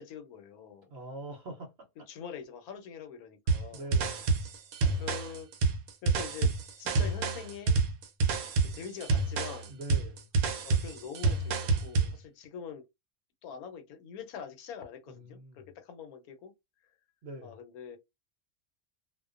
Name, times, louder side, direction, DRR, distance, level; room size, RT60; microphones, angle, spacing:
voice 1, 0.0-0.9 2.1-3.9 4.9-5.5 6.0-6.5 6.8-7.8 8.7-9.8 10.6-12.8 13.4-16.5 17.4-18.0, left 7 dB, 85° left, 1.1 m, -44 dB
voice 2, 0.9-2.1 3.7-4.3 9.7-10.3 15.1-15.7 17.2-17.6, right 1 dB, 60° right, 0.7 m, -44 dB
sound 1, 3.5-12.2, right 3 dB, 75° right, 1.0 m, -28 dB
2.4 x 2.1 x 2.4 m
omnidirectional pair, 1.5 m